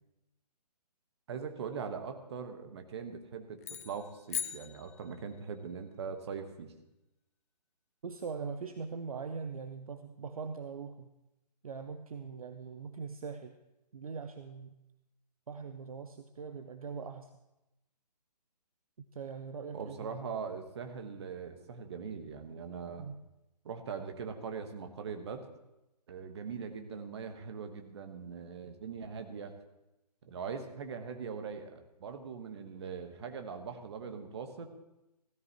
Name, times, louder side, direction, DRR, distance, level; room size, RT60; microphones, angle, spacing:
voice 1, 1.3-6.7 19.7-23.1 23.6-25.5 26.1-29.5 30.2-34.7, right 6 dB, 40° right, 7 dB, 1.3 m, -41 dB
sound 1, 3.6-5.5, left 9 dB, 20° left, 0.5 m, -40 dB
voice 2, 8.0-11.1 11.6-13.6 13.9-14.7 15.5-17.3 19.1-20.2 23.0-23.2, right 5 dB, 55° right, 8 dB, 0.7 m, -41 dB
16.0 x 13.5 x 3.0 m, 0.95 s
figure-of-eight pair, 140°, 21 cm